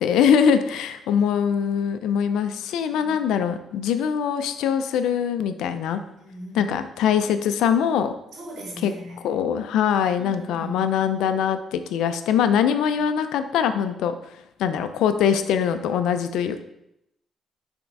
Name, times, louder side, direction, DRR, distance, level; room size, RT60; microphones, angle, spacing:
voice 1, 0.0-6.0 6.5-8.1 8.8-8.9 9.2-16.6, left 8 dB, 85° left, 10 dB, 0.4 m, -22 dB
voice 2, 6.2-6.8 8.3-9.2 10.2-10.8 15.3-15.4, equal, 70° right, -2 dB, 2.1 m, -39 dB
6.3 x 3.5 x 4.5 m, 0.82 s
cardioid pair, 90°, 0 cm